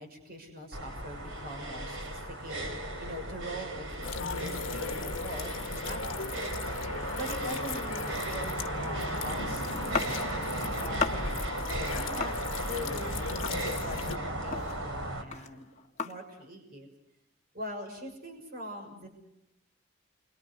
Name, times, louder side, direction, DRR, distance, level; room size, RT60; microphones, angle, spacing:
voice 1, 0.0-6.5 7.1-9.9 10.8-15.7 16.0-16.9 17.5-19.1, equal, 50° right, 4 dB, 6.4 m, -43 dB
sound 1, 0.7-15.2, right 1 dB, 70° right, 4.3 m, -36 dB
sound 2, 4.0-14.2, left 4 dB, 70° left, 1.6 m, -37 dB
sound 3, 9.9-10.6 11.0-11.5 12.2-12.9 13.4-14.1 14.4-16.5, left 4 dB, 35° left, 1.9 m, -35 dB
30.0 x 25.0 x 5.5 m, 0.85 s
head